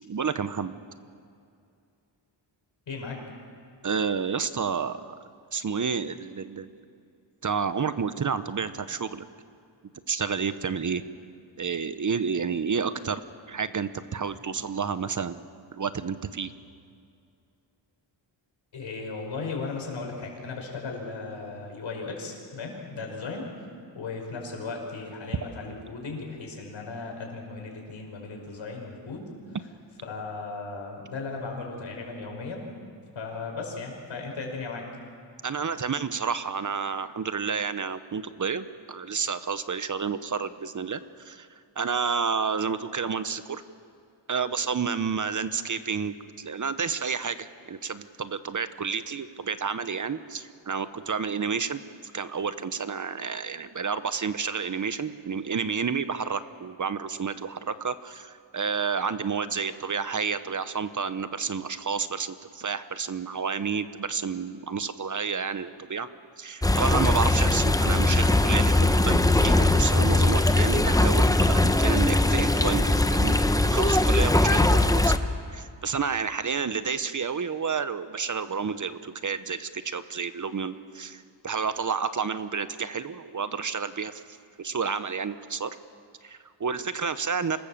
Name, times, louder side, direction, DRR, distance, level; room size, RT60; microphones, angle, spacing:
voice 1, 0.0-0.8 3.8-5.2 5.5-6.7 7.4-9.2 10.1-11.0 11.6-13.2 13.5-15.4 15.7-16.5 35.4-41.5 41.8-43.6 44.3-51.8 52.1-66.1 66.4-73.4 73.7-84.2 84.6-85.8 86.2-87.6, right 6 dB, 40° right, 12 dB, 0.9 m, -30 dB
voice 2, 2.9-3.2 18.7-23.7 23.9-29.6 30.0-32.6 33.1-34.8, left 4 dB, 75° left, 1 dB, 5.7 m, -36 dB
sound 1, 66.6-75.2, left 2 dB, 10° left, 0.9 m, -21 dB
26.0 x 19.0 x 7.4 m, 2.5 s
cardioid pair, 85°, 46 cm